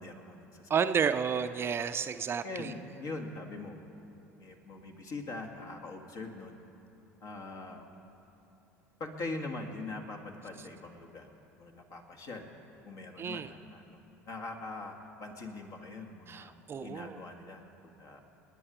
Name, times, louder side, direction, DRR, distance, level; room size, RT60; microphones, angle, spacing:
voice 1, 0.0-1.1 2.4-3.8 4.4-6.6 7.2-7.9 9.0-11.3 11.6-12.5 12.8-14.0 14.3-14.9 15.2-16.5 16.8-17.6 18.0-18.2, left 3 dB, 50° left, 3 dB, 2.1 m, -42 dB
voice 2, 0.7-2.7 13.2-13.5 16.3-17.2, right 7 dB, 30° right, 10 dB, 0.6 m, -31 dB
28.5 x 9.9 x 5.0 m, 3.0 s
figure-of-eight pair, 65°, 8 cm